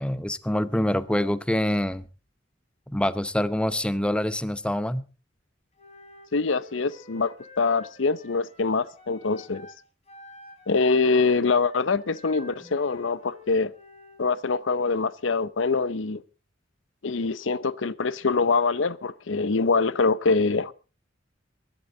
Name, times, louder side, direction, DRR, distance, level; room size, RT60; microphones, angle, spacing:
voice 1, 0.0-2.1 2.9-5.1, left 1 dB, 5° left, 0.6 m, -25 dB
Wind instrument woodwind instrument, 5.8-9.8 10.1-14.3, left 1 dB, 35° left, 4.4 m, -50 dB
voice 2, 6.3-9.7 10.7-13.7 14.2-16.2 17.0-20.7, left 4 dB, 85° left, 0.7 m, -24 dB
22.5 x 11.0 x 3.9 m
head